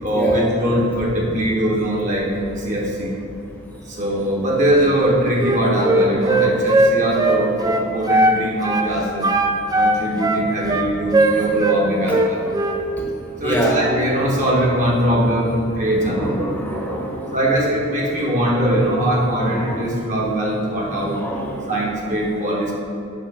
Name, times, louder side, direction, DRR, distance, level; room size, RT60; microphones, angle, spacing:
voice 1, 0.0-2.3 2.6-3.1 3.9-9.3 9.7-12.5 13.4-16.5 17.3-21.2 21.7-22.7, right 1 dB, 40° right, -3 dB, 1.2 m, -21 dB
Wind instrument woodwind instrument, 5.4-8.4 8.6-8.9 9.2-11.8 12.1-12.8, right 2 dB, 20° right, 0.4 m, -18 dB
voice 2, 12.1-12.5 13.4-13.8 15.9-17.4 19.5-19.8 20.8-21.6, right 1 dB, 10° left, -3 dB, 0.9 m, -26 dB
8.8 x 3.1 x 6.0 m, 2.7 s
head